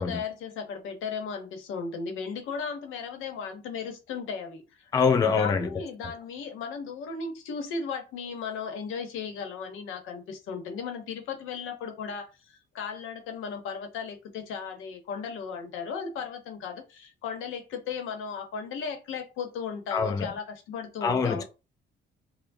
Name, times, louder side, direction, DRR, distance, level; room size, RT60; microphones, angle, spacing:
voice 1, 0.0-4.8 5.4-21.4, left 5 dB, 90° left, 0.8 m, -36 dB
voice 2, 4.9-5.7 19.9-20.3 21.0-21.4, left 5 dB, 20° left, 0.3 m, -24 dB
4.5 x 2.1 x 2.6 m
cardioid pair, 90°, 20 cm